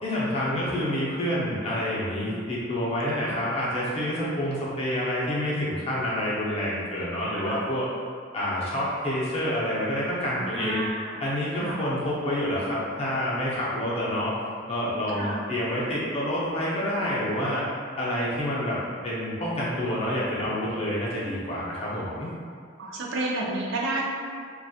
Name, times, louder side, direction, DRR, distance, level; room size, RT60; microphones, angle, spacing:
voice 1, 0.0-7.9 8.3-10.8 11.2-14.3 14.7-17.6 18.0-22.3, left 1 dB, 30° left, -7 dB, 0.5 m, -28 dB
voice 2, 10.3-11.2 11.6-11.8 15.1-15.4 22.8-24.0, right 2 dB, 70° right, -3 dB, 0.4 m, -31 dB
2.4 x 2.2 x 2.7 m, 2.1 s
head